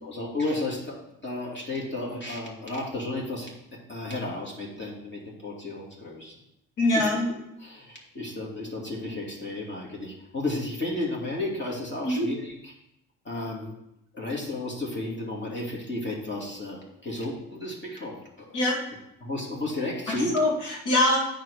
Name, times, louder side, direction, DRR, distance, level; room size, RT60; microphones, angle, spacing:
voice 1, 0.0-6.4 6.9-7.2 7.6-12.7 13.2-13.8 14.1-18.6 19.2-20.4, left 2 dB, 35° left, -3 dB, 2.6 m, -33 dB
voice 2, 6.8-7.3 12.0-12.3 18.5-18.8 20.3-21.2, left 1 dB, 70° left, -1 dB, 2.6 m, -23 dB
9.1 x 4.7 x 4.9 m, 0.83 s
supercardioid pair, 65°, 32 cm